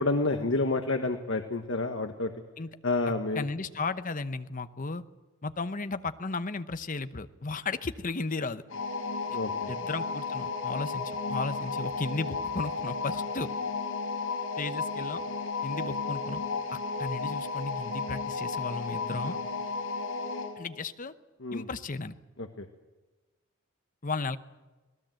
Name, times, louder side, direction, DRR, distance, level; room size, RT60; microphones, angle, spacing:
voice 1, 0.0-2.3 2.8-3.5 9.3-9.7 21.4-21.7 22.4-22.6, left 2 dB, 65° left, 5 dB, 1.4 m, -29 dB
voice 2, 3.3-5.0 5.4-8.6 9.7-13.5 14.6-15.2 15.6-16.4 16.7-19.4 20.6-21.1 21.5-22.1 24.0-24.4, left 3 dB, 40° left, 11 dB, 0.9 m, -34 dB
sound 1, 8.7-20.6, left 4 dB, 80° left, 5.3 m, -33 dB
26.5 x 18.5 x 7.7 m, 1.2 s
head